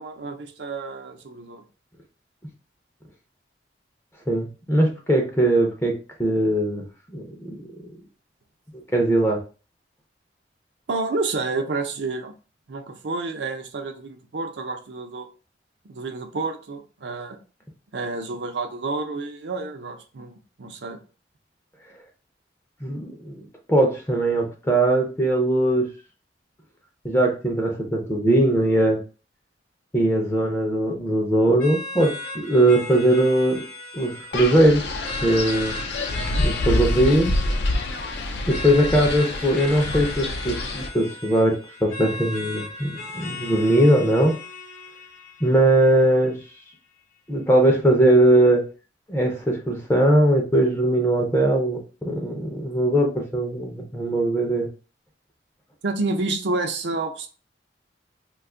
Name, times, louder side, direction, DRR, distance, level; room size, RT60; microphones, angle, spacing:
voice 1, 0.0-1.6 10.9-12.3 12.7-15.3 15.8-17.4 17.9-21.0 55.8-57.3, right 3 dB, 75° right, 5 dB, 0.6 m, -29 dB
voice 2, 4.3-5.9 6.2-6.8 7.1-7.6 8.9-9.4 22.8-25.9 27.0-29.0 29.9-33.6 33.9-34.9 35.2-35.8 36.4-37.3 38.5-44.4 45.4-46.4 47.3-48.6 49.1-54.7, right 1 dB, 15° left, 1 dB, 0.5 m, -20 dB
sound 1, 31.6-46.6, left 2 dB, 45° left, 0.8 m, -37 dB
Wind, 34.3-40.9, left 2 dB, 75° left, 0.5 m, -27 dB
2.5 x 2.3 x 3.6 m, 0.36 s
head